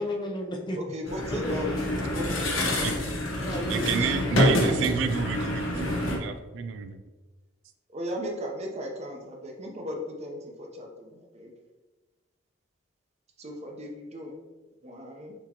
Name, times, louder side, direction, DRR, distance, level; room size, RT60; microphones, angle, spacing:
voice 1, 0.0-0.8 1.3-1.8 3.4-4.6, left 1 dB, 20° left, 2 dB, 0.5 m, -34 dB
voice 2, 0.7-2.8 4.0-4.2 7.9-11.5 13.4-14.4 14.8-15.3, equal, 35° right, 1 dB, 0.7 m, -37 dB
sound 1, 1.1-6.2, left 1 dB, 80° left, 1.1 m, -27 dB
voice 3, 3.7-7.0, right 6 dB, 65° right, 8 dB, 0.3 m, -30 dB
5.9 x 3.0 x 2.9 m, 1.2 s
head